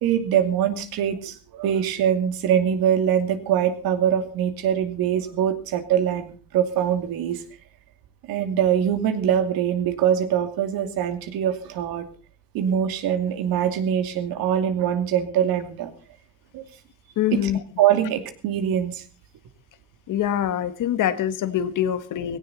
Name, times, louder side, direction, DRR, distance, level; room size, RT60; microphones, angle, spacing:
voice 1, 0.0-7.4 8.3-12.0 12.5-15.9 16.5-16.6 17.3-17.5 17.8-19.0, right 9 dB, 80° right, 8 dB, 2.6 m, -23 dB
voice 2, 17.2-17.6 20.1-22.4, left 10 dB, 60° left, 13 dB, 1.6 m, -24 dB
17.5 x 17.0 x 4.1 m, 0.36 s
cardioid pair, 145°, 35 cm